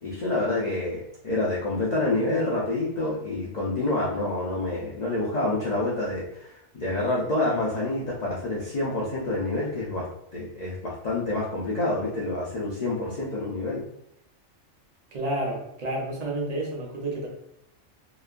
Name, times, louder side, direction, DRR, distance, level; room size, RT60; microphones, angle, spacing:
voice 1, 0.0-10.1 10.3-13.8, left 2 dB, 60° left, -5 dB, 0.4 m, -27 dB
voice 2, 15.1-17.3, right 1 dB, 40° right, -2 dB, 0.6 m, -30 dB
2.9 x 2.2 x 2.3 m, 0.78 s
omnidirectional pair, 1.3 m